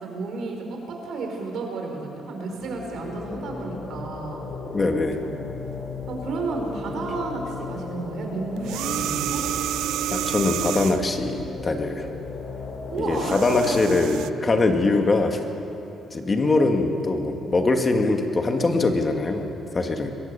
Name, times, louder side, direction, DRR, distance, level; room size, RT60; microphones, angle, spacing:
voice 1, 0.0-4.4 6.1-9.4 12.9-13.8 15.0-15.1, right 3 dB, 70° right, 2 dB, 4.6 m, -32 dB
sound 1, 2.5-14.0, left 4 dB, 60° left, 3.8 m, -36 dB
voice 2, 4.7-5.2 10.1-12.1 13.0-15.4 16.1-19.5 19.7-20.1, left 3 dB, 30° left, 4 dB, 2.1 m, -22 dB
sound 2, 8.6-11.2 13.0-14.3, right 12 dB, 90° right, 0.5 m, -29 dB
22.5 x 16.5 x 6.9 m, 2.9 s
cardioid pair, 90°, 0 cm